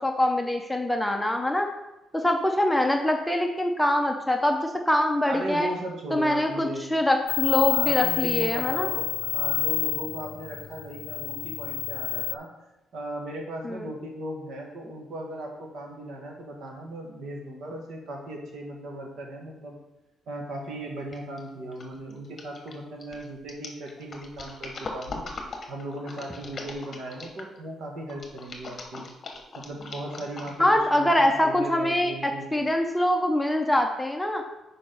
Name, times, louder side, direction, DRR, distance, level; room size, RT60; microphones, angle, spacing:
voice 1, 0.0-1.7 2.1-5.7 6.1-8.9 13.6-13.9 30.6-34.4, left 1 dB, 5° left, 3 dB, 0.6 m, -24 dB
voice 2, 5.3-6.9 7.7-12.5 12.9-19.8 20.3-25.2 25.7-29.1 29.6-32.7, right 1 dB, 65° right, 0 dB, 1.7 m, -37 dB
sound 1, 7.3-12.4, left 18 dB, 65° left, 0.6 m, -28 dB
sound 2, 21.1-21.4 21.7-27.6 28.1-30.8 31.2-31.3, left 3 dB, 30° left, 1.1 m, -40 dB
6.7 x 4.9 x 5.2 m, 0.95 s
cardioid pair, 150°, 0 cm